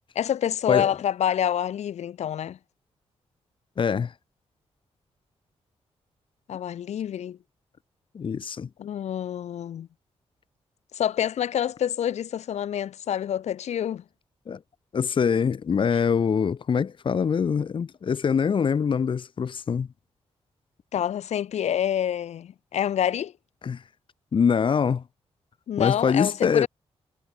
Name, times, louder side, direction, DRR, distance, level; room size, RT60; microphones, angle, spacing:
voice 1, 0.2-2.6 6.5-7.4 8.8-9.9 10.9-14.0 15.9-16.0 20.9-23.3 25.7-26.7, left 10 dB, 85° left, 1.7 m, -27 dB
voice 2, 3.8-4.1 8.1-8.7 14.5-14.6 14.9-19.9 23.6-23.8 24.3-25.0 25.8-26.7, left 6 dB, 50° left, 1.7 m, -24 dB
wide cardioid pair, 120°, 11 cm